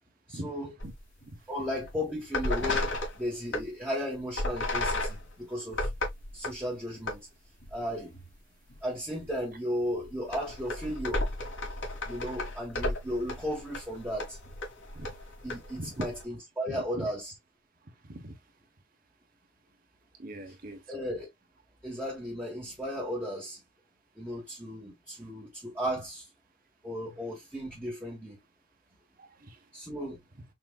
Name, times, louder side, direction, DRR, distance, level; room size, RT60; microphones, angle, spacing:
voice 1, 0.3-0.7 1.5-5.9 6.3-7.3 7.7-8.1 8.8-11.3 12.1-14.4 15.4-17.3 20.9-21.3 21.8-23.6 24.2-26.2 26.8-28.4 29.7-30.2, equal, 10° right, 1.4 m, -35 dB
sound 1, 0.8-1.3 1.7-1.9 2.3-3.7 4.3-6.6 7.0-7.2 7.6-8.4 8.7-8.8 9.2-9.3 10.0-16.2, left 2 dB, 75° left, 1.9 m, -34 dB
voice 2, 16.7-17.1 18.0-18.3 20.2-20.8 29.2-29.6, right 1 dB, 50° right, 1.1 m, -40 dB
5.9 x 2.7 x 2.4 m
head